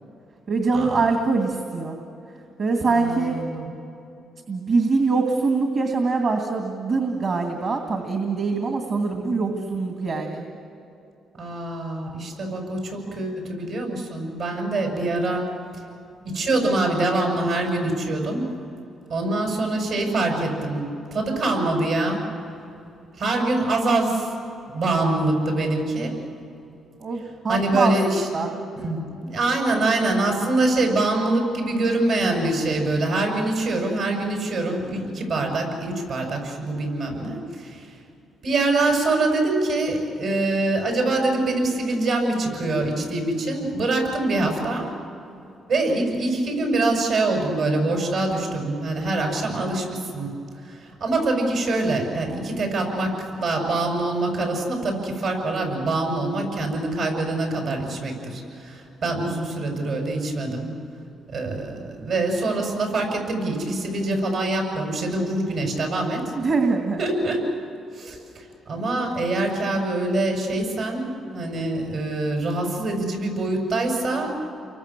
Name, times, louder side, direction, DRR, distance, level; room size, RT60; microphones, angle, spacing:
voice 1, 0.5-2.0 2.6-3.4 4.5-10.4 27.0-27.9 28.3-28.5 66.4-67.0, right 4 dB, 55° right, 3 dB, 2.4 m, -23 dB
voice 2, 2.8-3.7 9.1-9.5 11.4-15.5 16.2-18.4 19.1-22.2 23.2-24.3 24.7-26.1 27.5-28.3 28.8-37.9 38.4-44.9 45.7-50.3 50.7-60.7 61.3-66.3 67.0-67.5 68.0-74.3, right 2 dB, 70° right, 2 dB, 7.0 m, -24 dB
30.0 x 23.5 x 7.6 m, 2.9 s
cardioid pair, 90°, 0 cm